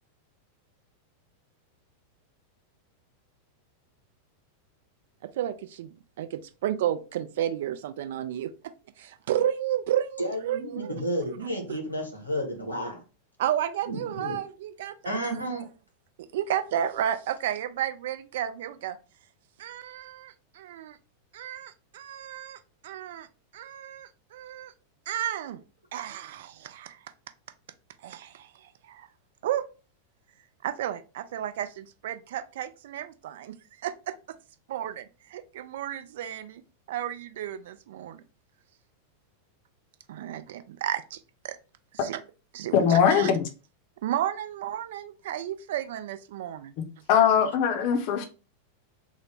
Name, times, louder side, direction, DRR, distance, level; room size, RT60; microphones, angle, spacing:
voice 1, 5.2-8.5 9.0-11.0 11.7-11.8 13.4-15.4 16.3-19.0 19.6-21.0 21.3-23.3 23.5-24.7 25.1-25.6 25.9-27.0 28.0-29.1 29.4-29.7 30.6-34.1 34.7-36.6 36.9-38.2 40.1-41.2 41.4-41.6 41.9-42.2 42.5-43.3 44.0-46.7, right 11 dB, 55° right, 0.3 m, -32 dB
voice 2, 10.2-13.0 13.9-14.4 15.0-15.6, equal, 85° left, 1.0 m, -32 dB
voice 3, 42.7-43.5 47.1-48.2, left 8 dB, 45° left, 0.6 m, -21 dB
3.7 x 2.0 x 3.3 m
figure-of-eight pair, 90°, 0 cm